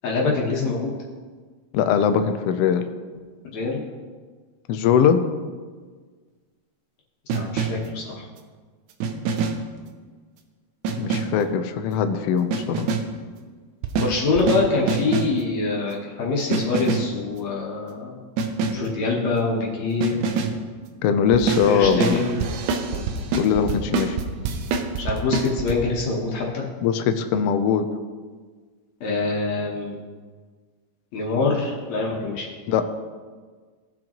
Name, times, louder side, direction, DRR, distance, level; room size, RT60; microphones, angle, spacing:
voice 1, 0.0-0.9 3.4-3.8 7.3-8.3 14.0-18.2 18.7-20.5 21.7-22.4 22.9-23.2 25.0-26.7 29.0-30.0 31.1-32.5, left 3 dB, 70° left, -3 dB, 2.3 m, -25 dB
voice 2, 1.7-2.8 4.7-5.2 11.0-12.9 21.0-22.2 23.3-24.2 26.8-27.9 32.7-32.8, left 7 dB, 90° left, 8 dB, 1.3 m, -21 dB
sound 1, 7.3-8.0 9.0-9.8 10.8-11.5 12.5-13.2 13.8-15.4 16.5-17.2 18.4-18.9 20.0-20.6 21.3-25.8, right 4 dB, 80° right, 2.2 m, -26 dB
17.5 x 6.2 x 3.0 m, 1.5 s
omnidirectional pair, 3.4 m